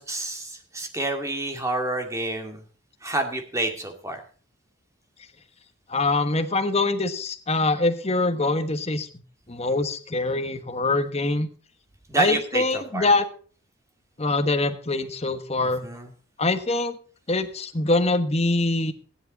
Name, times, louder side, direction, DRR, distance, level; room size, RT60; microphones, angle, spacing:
voice 1, 0.0-2.6 3.0-4.2 12.1-13.1 15.6-16.1, right 2 dB, 15° right, 4 dB, 2.0 m, -28 dB
voice 2, 5.9-9.1 9.5-11.5 12.1-13.2 14.2-15.8 16.4-17.0 17.3-18.9, left 2 dB, 30° left, 8 dB, 1.2 m, -24 dB
15.0 x 10.5 x 4.0 m, 0.41 s
head